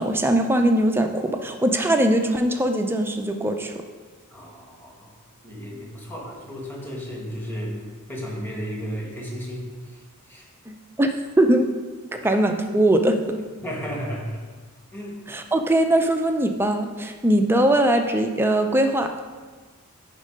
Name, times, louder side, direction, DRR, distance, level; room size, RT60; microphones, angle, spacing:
voice 1, 0.0-3.7 10.7-11.7 12.2-13.4 15.3-19.1, right 1 dB, 10° right, 5 dB, 0.5 m, -21 dB
voice 2, 4.3-5.2 5.4-7.8 8.1-9.7 10.3-10.5 12.1-12.3 13.4-14.4 14.9-15.2, equal, 10° left, -3 dB, 1.4 m, -33 dB
9.4 x 3.7 x 5.1 m, 1.4 s
head